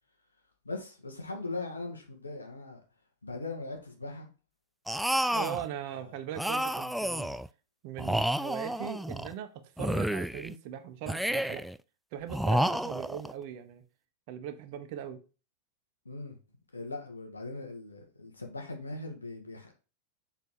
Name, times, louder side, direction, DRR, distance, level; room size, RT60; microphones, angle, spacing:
voice 1, 0.6-2.8 3.2-4.3 5.3-5.6 5.9-6.1 16.1-16.4 16.7-19.7, left 2 dB, 80° left, 2.0 m, -40 dB
sound 1, 4.9-5.7 6.4-7.5 8.0-9.3 9.8-10.5 11.1-11.8 12.3-13.3, right 1 dB, ahead, 0.3 m, -30 dB
voice 2, 5.3-7.3 7.8-9.5 9.8-11.7 12.1-13.8 14.3-15.2, right 9 dB, 45° right, 1.2 m, -39 dB
7.0 x 4.4 x 4.9 m
figure-of-eight pair, 90°, 0 cm